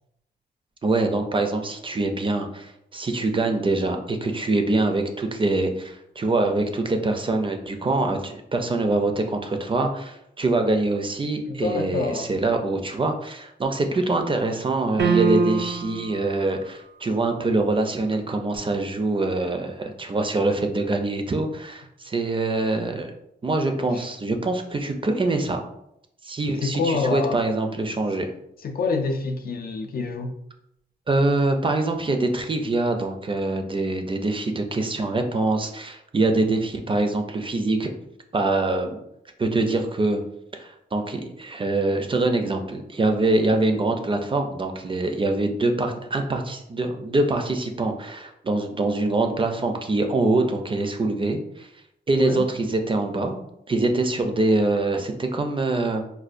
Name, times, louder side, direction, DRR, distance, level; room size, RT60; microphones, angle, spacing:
voice 1, 0.8-23.1 23.4-25.6 26.2-28.3 31.1-37.9 38.3-39.0 39.4-40.2 40.5-51.7 52.1-53.4 53.7-56.0, right 2 dB, 30° right, 5 dB, 0.4 m, -24 dB
voice 2, 11.5-12.3 23.9-24.0 26.6-27.4 28.6-30.3 52.1-52.5, left 4 dB, 60° left, 5 dB, 0.4 m, -26 dB
sound 1, 15.0-16.1, right 5 dB, 90° right, 0.5 m, -21 dB
4.2 x 2.2 x 2.5 m, 0.77 s
wide cardioid pair, 105°, 18 cm